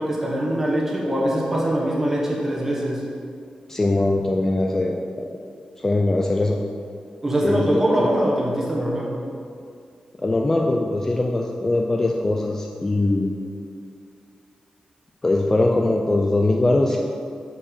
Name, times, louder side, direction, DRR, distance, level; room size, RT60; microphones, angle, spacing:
voice 1, 0.0-3.1 7.2-9.1, right 1 dB, 15° right, -4 dB, 1.4 m, -22 dB
voice 2, 3.7-5.3 5.8-6.6 7.4-8.1 10.2-13.3 15.2-17.0, left 2 dB, 20° left, 1 dB, 0.4 m, -21 dB
5.8 x 5.4 x 6.5 m, 2.3 s
wide cardioid pair, 165°, 2 cm